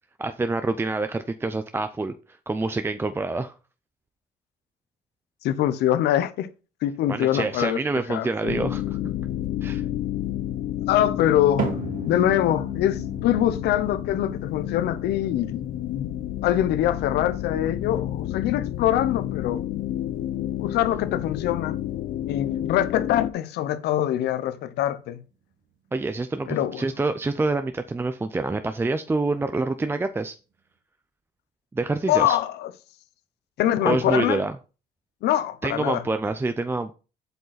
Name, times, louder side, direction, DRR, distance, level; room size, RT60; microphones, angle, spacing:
voice 1, 0.2-3.5 7.1-9.0 9.6-9.8 25.9-30.3 31.7-32.4 33.8-34.5 35.6-36.9, right 3 dB, 15° right, 0.5 m, -27 dB
voice 2, 5.4-6.5 6.8-7.8 8.1-8.5 10.9-11.7 12.0-15.6 15.9-16.1 16.4-19.6 20.6-21.8 22.2-25.2 26.5-26.8 32.1-32.7 33.6-34.4 35.2-36.0, left 12 dB, 80° left, 0.9 m, -24 dB
sound 1, 8.5-23.3, left 13 dB, 60° left, 0.6 m, -30 dB
sound 2, 11.6-27.9 28.2-28.7 29.3-29.4 30.3-30.4, right 7 dB, 50° right, 2.2 m, -41 dB
7.9 x 5.4 x 4.1 m
cardioid pair, 110°, 17 cm